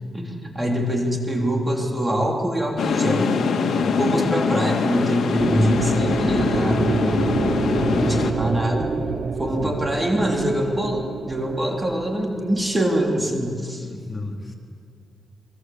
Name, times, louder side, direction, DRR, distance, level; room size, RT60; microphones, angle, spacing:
voice 1, 0.1-3.3 3.9-8.9 9.4-13.9, equal, 15° right, 1 dB, 3.4 m, -24 dB
sound 1, 2.8-8.3, left 5 dB, 75° left, 2.1 m, -23 dB
voice 2, 3.7-4.0 9.6-9.8 13.8-14.5, left 2 dB, 25° left, 1 dB, 3.8 m, -34 dB
sound 2, 5.4-13.5, right 5 dB, 60° right, 0.8 m, -28 dB
23.5 x 22.5 x 7.9 m, 2.2 s
cardioid pair, 80°, 0 cm